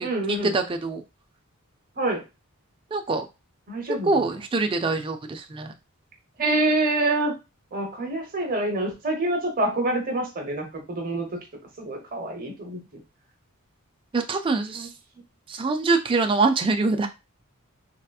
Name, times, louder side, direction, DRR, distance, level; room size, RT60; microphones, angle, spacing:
voice 1, 0.0-0.6 2.0-2.2 3.7-4.3 6.4-7.3 7.7-11.4 11.8-13.0 14.7-14.9, right 2 dB, 40° right, 2 dB, 0.8 m, -26 dB
voice 2, 0.5-1.0 2.9-3.3 4.0-5.7 14.1-14.9 15.5-17.1, right 3 dB, 25° right, 6 dB, 0.3 m, -24 dB
3.3 x 2.8 x 2.3 m, 0.26 s
head